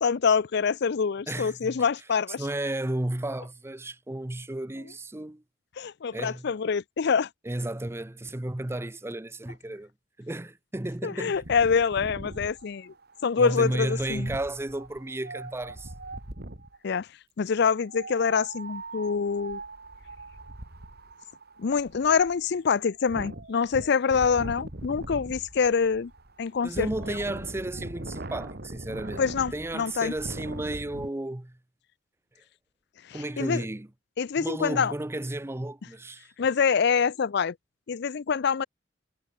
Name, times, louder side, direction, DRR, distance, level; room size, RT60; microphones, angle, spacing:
voice 1, 0.0-2.4 5.8-7.3 11.0-12.9 13.2-14.3 16.8-17.1 17.4-19.6 21.6-26.1 26.4-26.9 29.2-30.1 33.1-33.6 34.2-34.9 36.4-37.5 37.9-38.6, left 6 dB, 60° left, 0.5 m, -25 dB
voice 2, 1.3-1.8 2.4-5.4 6.1-6.5 7.4-9.9 10.2-11.4 13.4-15.9 26.6-29.2 29.5-31.6 33.1-33.9 34.4-36.3, right 1 dB, 15° right, 0.6 m, -33 dB
Wind, 11.3-16.8 17.8-31.1, right 2 dB, 55° right, 2.5 m, -41 dB
head